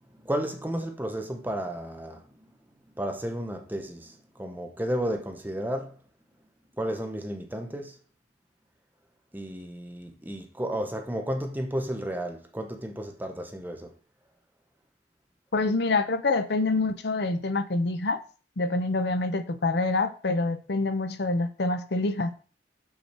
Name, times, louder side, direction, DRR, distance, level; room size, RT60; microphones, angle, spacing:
voice 1, 0.1-2.5 2.8-6.0 6.7-8.0 9.3-13.9, equal, 10° right, 0.9 m, -33 dB
voice 2, 15.5-18.2 18.6-22.3, left 3 dB, 65° left, 0.7 m, -26 dB
6.2 x 5.8 x 4.4 m
head